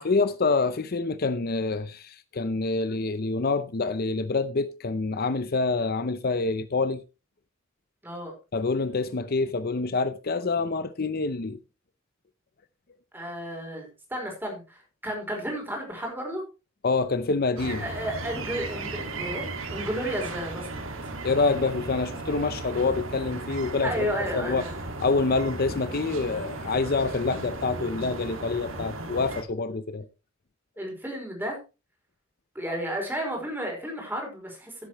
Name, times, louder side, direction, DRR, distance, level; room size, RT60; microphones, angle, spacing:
voice 1, 0.0-7.0 8.5-11.6 16.8-17.9 21.2-24.1 24.3-24.7 25.0-30.0, left 3 dB, 50° left, 0.6 m, -26 dB
voice 2, 13.1-16.4 17.8-20.7 23.8-24.8 30.8-31.6 32.5-34.9, equal, 10° right, 4.7 m, -33 dB
sound 1, 17.6-29.4, right 2 dB, 85° right, 2.1 m, -36 dB
15.5 x 8.3 x 3.0 m
head